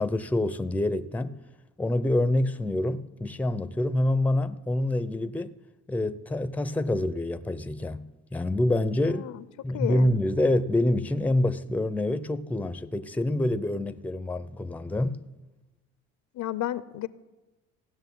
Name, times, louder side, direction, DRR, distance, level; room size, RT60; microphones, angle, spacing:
voice 1, 0.0-1.4 1.8-5.6 5.9-9.3 9.6-15.2, left 1 dB, 5° left, 0.6 m, -26 dB
voice 2, 9.1-9.4 9.7-10.1 16.3-17.1, left 13 dB, 60° left, 0.7 m, -32 dB
16.0 x 6.4 x 9.3 m
supercardioid pair, 80°, 32 cm